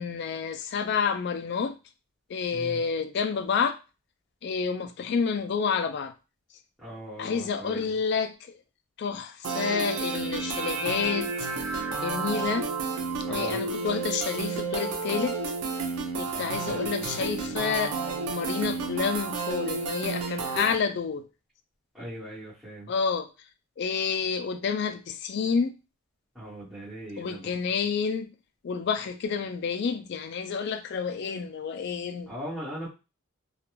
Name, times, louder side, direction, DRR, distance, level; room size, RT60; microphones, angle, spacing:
voice 1, 0.0-1.7 2.3-3.8 4.4-6.1 7.2-8.6 9.0-12.7 13.3-15.4 16.1-18.0 18.3-21.3 22.9-23.3 23.8-25.8 27.2-28.3 28.6-32.3, left 6 dB, 50° left, 0.3 m, -29 dB
voice 2, 2.5-2.8 6.8-7.9 13.3-13.6 16.3-17.3 21.9-22.9 26.3-27.6 32.3-32.9, equal, ahead, 0.9 m, -40 dB
sound 1, 9.4-20.7, right 4 dB, 85° right, 0.5 m, -31 dB
2.4 x 2.2 x 3.0 m
head